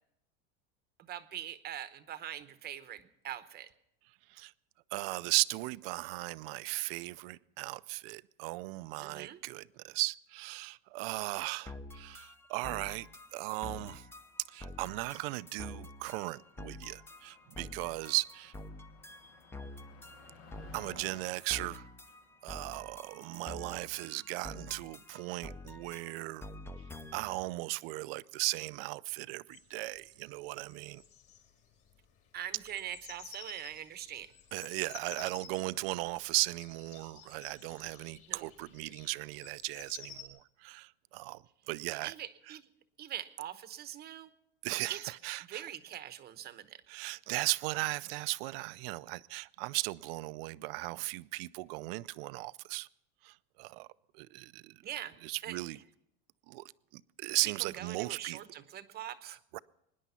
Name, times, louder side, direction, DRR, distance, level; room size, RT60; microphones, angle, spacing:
voice 1, 1.0-3.7 9.0-9.4 32.3-34.3 38.3-38.5 41.9-42.7 43.0-44.3 44.9-45.1 45.5-46.8 54.8-55.2 55.4-55.6 57.4-59.4, right 11 dB, 35° right, 0.9 m, -43 dB
voice 2, 4.9-13.1 13.3-14.1 14.5-18.5 20.7-21.9 22.4-26.4 27.1-31.0 34.5-42.1 42.5-42.6 44.6-45.7 46.9-52.9 53.2-53.9 54.1-54.8 55.2-55.8 56.5-56.6 56.9-58.4 59.5-59.6, right 22 dB, 70° right, 0.5 m, -37 dB
sound 1, 11.7-27.4, left 2 dB, 10° left, 0.6 m, -48 dB
Motor vehicle (road), 13.1-23.3, left 5 dB, 75° left, 2.9 m, -60 dB
sound 2, 29.5-40.3, left 8 dB, 50° left, 4.5 m, -53 dB
23.5 x 10.0 x 5.6 m
supercardioid pair, 140°, 30 cm